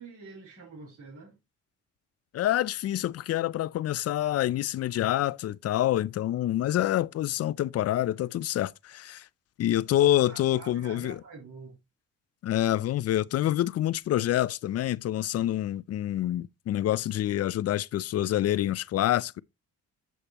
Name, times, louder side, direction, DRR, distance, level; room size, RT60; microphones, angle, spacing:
voice 1, 0.0-1.4 10.0-11.8, right 4 dB, 80° right, 3.9 m, -46 dB
voice 2, 2.3-9.3 9.6-11.2 12.4-19.4, left 13 dB, 55° left, 0.5 m, -27 dB
7.6 x 6.6 x 2.9 m
cardioid pair, 90°, 30 cm